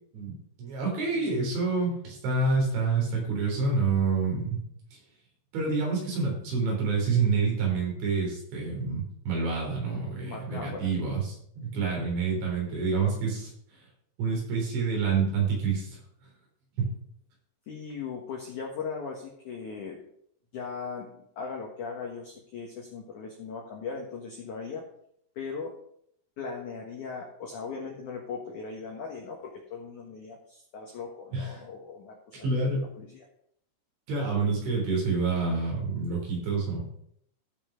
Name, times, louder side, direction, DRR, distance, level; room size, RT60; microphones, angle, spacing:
voice 1, 0.1-4.6 4.9-5.0 5.5-13.5 14.2-16.0 16.8-16.9 31.3-31.6 32.4-32.9 34.1-36.9, right 4 dB, 65° right, -2 dB, 5.8 m, -28 dB
voice 2, 9.8-10.9 17.7-20.0 20.5-24.8 25.3-25.7 26.4-33.2, left 5 dB, 75° left, 0 dB, 1.8 m, -39 dB
14.5 x 5.7 x 5.1 m, 0.70 s
omnidirectional pair, 5.9 m